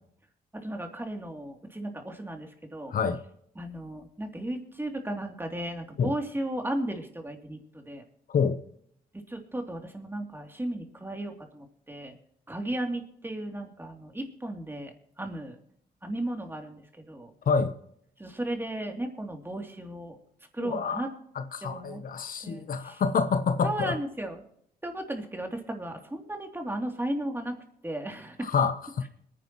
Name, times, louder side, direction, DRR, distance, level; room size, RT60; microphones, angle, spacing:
voice 1, 0.5-2.9 3.6-8.0 9.1-12.2 12.5-15.6 16.0-17.3 18.2-20.2 20.5-21.1 21.6-22.0 22.4-23.0 23.6-24.4 24.8-27.5 27.8-28.5, right 1 dB, 15° right, 3.0 m, -35 dB
voice 2, 20.6-21.0 21.5-23.9 28.4-29.1, left 5 dB, 60° left, 0.9 m, -27 dB
22.0 x 10.0 x 3.1 m
cardioid pair, 65°, 16 cm